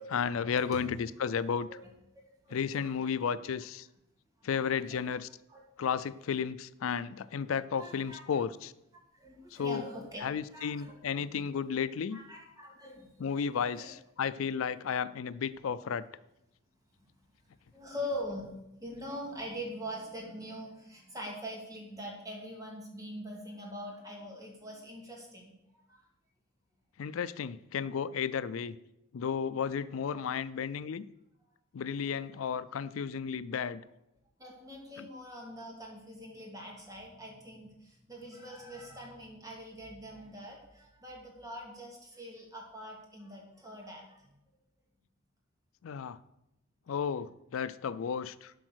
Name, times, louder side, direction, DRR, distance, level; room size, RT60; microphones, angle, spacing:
voice 1, 0.0-1.7 2.5-3.9 4.4-5.3 5.8-8.7 9.5-9.8 10.2-12.2 13.2-16.0 27.0-28.8 29.1-31.1 31.7-33.8 35.0-35.1 45.8-46.2 46.9-48.5, left 7 dB, 90° left, 16 dB, 0.4 m, -33 dB
voice 2, 1.7-3.1 4.5-5.0 5.5-5.6 7.8-8.4 9.1-10.3 10.5-11.3 12.1-13.1 13.7-13.9 17.7-18.5 18.8-25.5 25.9-26.0 34.4-44.3, equal, 20° right, -1 dB, 2.5 m, -43 dB
12.0 x 4.9 x 6.3 m, 0.87 s
head